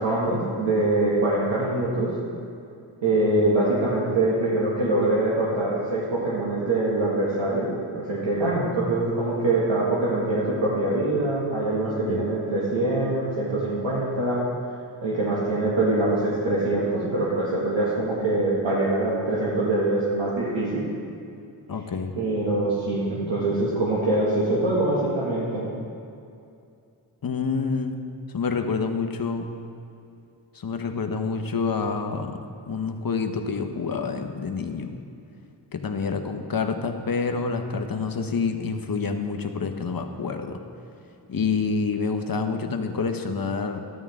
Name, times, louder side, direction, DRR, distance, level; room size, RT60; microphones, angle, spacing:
voice 1, 0.0-2.1 3.0-7.7 7.9-14.5 15.0-20.8 22.2-25.6, right 2 dB, 75° right, -8 dB, 2.1 m, -24 dB
voice 2, 21.7-22.2 27.2-28.0 28.3-29.5 30.5-32.4 32.7-35.0 35.7-40.6 41.3-43.8, left 5 dB, 50° left, 5 dB, 1.1 m, -27 dB
12.5 x 10.5 x 3.7 m, 2.5 s
cardioid pair, 45°, 46 cm